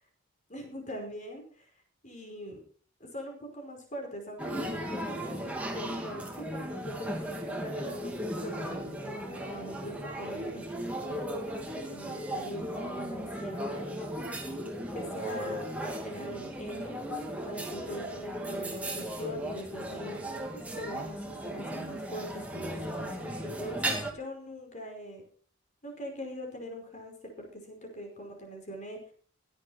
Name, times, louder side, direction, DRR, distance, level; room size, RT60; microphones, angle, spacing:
voice 1, 0.5-1.6 2.0-2.6 3.0-14.1 14.9-17.1 17.4-25.2 25.8-29.1, equal, 35° left, 2 dB, 5.2 m, -42 dB
sound 1, 4.4-24.1, right 1 dB, 5° right, 2.5 m, -36 dB
16.0 x 11.0 x 4.4 m, 0.44 s
head